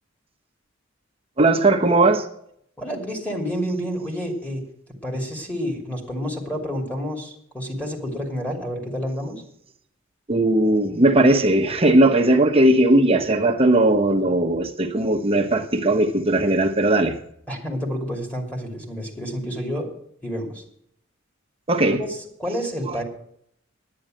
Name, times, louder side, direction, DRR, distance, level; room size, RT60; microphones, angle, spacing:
voice 1, 1.4-2.3 10.3-17.1 21.7-22.0 22.9-23.0, right 1 dB, 30° right, 1.1 m, -18 dB
voice 2, 2.8-4.6 5.0-9.4 17.5-19.9 20.2-20.6 21.9-23.0, equal, 10° left, 2.7 m, -29 dB
10.5 x 9.7 x 7.6 m
head